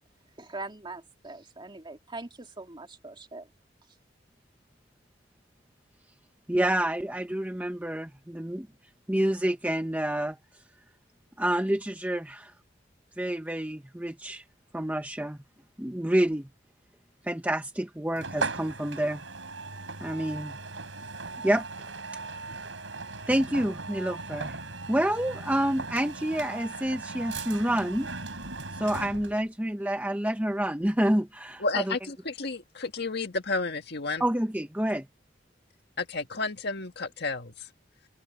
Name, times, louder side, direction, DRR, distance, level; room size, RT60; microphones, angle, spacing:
voice 1, 0.4-3.5, right 2 dB, 25° right, 2.4 m, -42 dB
voice 2, 6.5-8.7 9.1-10.4 11.4-12.5 13.2-14.4 14.7-15.4 15.8-16.5 17.2-19.2 20.0-20.5 21.4-21.6 23.3-28.1 28.7-31.9 34.2-35.1, right 1 dB, 10° right, 1.0 m, -28 dB
sound 1, 18.2-29.4, right 3 dB, 90° right, 6.9 m, -38 dB
voice 3, 31.6-34.2 36.0-37.7, left 3 dB, 60° left, 1.8 m, -31 dB
open air
head